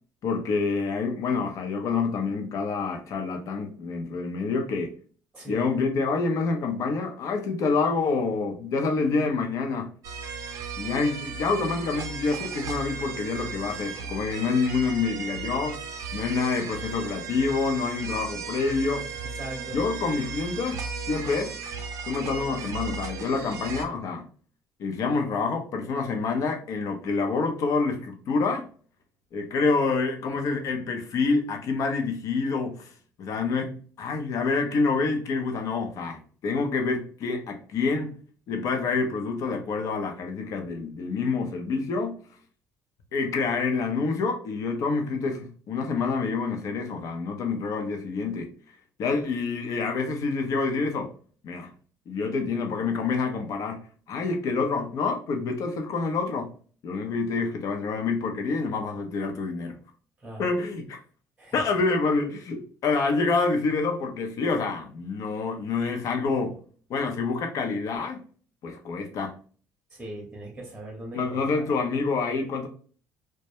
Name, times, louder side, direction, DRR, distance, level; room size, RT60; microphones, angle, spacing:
voice 1, 0.2-4.9 5.5-9.9 10.8-15.8 16.1-19.1 19.7-21.5 22.1-24.3 24.8-28.7 29.3-32.9 33.2-38.2 38.5-42.2 43.1-48.5 49.0-51.1 51.4-51.7 52.1-53.8 54.1-56.5 56.8-59.8 60.4-61.0 61.5-66.6 66.9-68.2 68.6-69.3 71.1-72.7, left 4 dB, 60° left, 0.6 m, -27 dB
voice 2, 5.3-5.7 19.4-19.8 60.2-60.4 61.4-61.6 69.9-71.7, right 1 dB, 15° right, 0.8 m, -39 dB
sound 1, 10.0-23.8, right 5 dB, 60° right, 0.4 m, -36 dB
2.1 x 2.1 x 2.8 m
cardioid pair, 100°, 6 cm